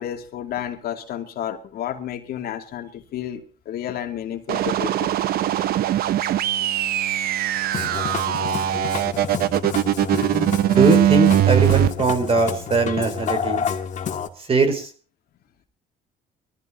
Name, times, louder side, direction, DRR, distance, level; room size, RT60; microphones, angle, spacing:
voice 1, 0.0-5.1 5.4-5.5 9.7-9.8 12.9-13.0, left 10 dB, 65° left, 2.7 m, -31 dB
sound 1, 4.5-11.9, right 12 dB, 65° right, 0.8 m, -21 dB
Musical instrument, 7.6-14.3, left 7 dB, 45° left, 2.3 m, -29 dB
voice 2, 10.7-13.7 14.5-14.9, right 3 dB, 35° right, 4.8 m, -21 dB
24.0 x 15.0 x 2.9 m
cardioid pair, 110°, 17 cm